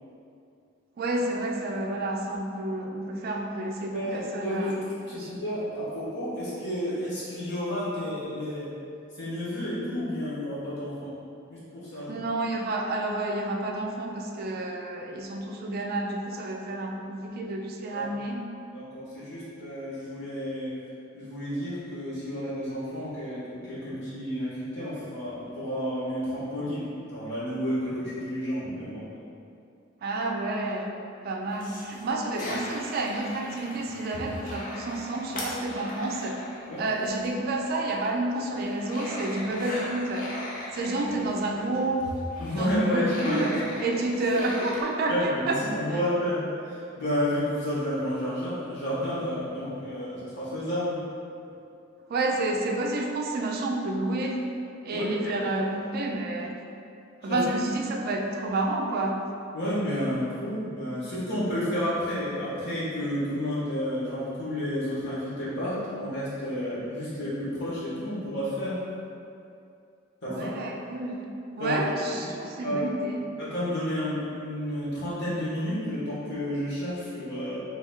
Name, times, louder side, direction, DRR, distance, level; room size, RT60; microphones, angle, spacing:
voice 1, 1.0-4.8 5.1-5.3 12.1-18.4 30.0-30.9 31.2-36.4 36.8-40.3 40.7-42.1 42.6-45.6 52.1-54.4 54.8-56.6 57.2-59.2 70.3-71.2 71.6-73.2, right 2 dB, 50° right, 1 dB, 0.4 m, -29 dB
voice 2, 3.9-8.7 9.2-11.1 11.5-12.2 17.9-18.1 18.7-20.7 21.1-29.0 36.7-36.8 42.4-43.6 45.1-51.0 54.9-55.3 57.2-57.4 59.5-68.8 70.2-70.5 71.6-72.2 72.6-72.9 73.4-77.6, equal, 60° left, -10 dB, 1.4 m, -31 dB
sound 1, 31.5-37.4 37.8-44.8, left 1 dB, 45° left, 0.7 m, -39 dB
3.3 x 3.0 x 3.6 m, 2.5 s
head